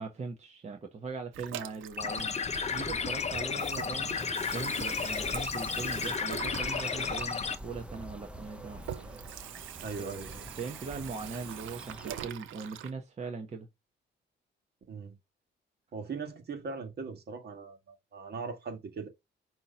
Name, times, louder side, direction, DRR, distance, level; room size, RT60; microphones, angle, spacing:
voice 1, 0.0-2.4 2.7-4.2 4.5-8.8 10.4-13.7, right 4 dB, 35° right, 1.1 m, -40 dB
Water tap faucet / Sink (filling or washing), 1.3-3.1 3.4-12.9, right 11 dB, 80° right, 0.6 m, -44 dB
sound 1, 2.0-7.5, left 5 dB, 35° left, 0.7 m, -33 dB
sound 2, 2.5-12.3, right 1 dB, 5° right, 0.8 m, -46 dB
voice 2, 9.8-10.4 14.9-15.2 15.9-19.1, right 4 dB, 55° right, 1.8 m, -40 dB
6.1 x 3.0 x 5.6 m
cardioid pair, 90°, 20 cm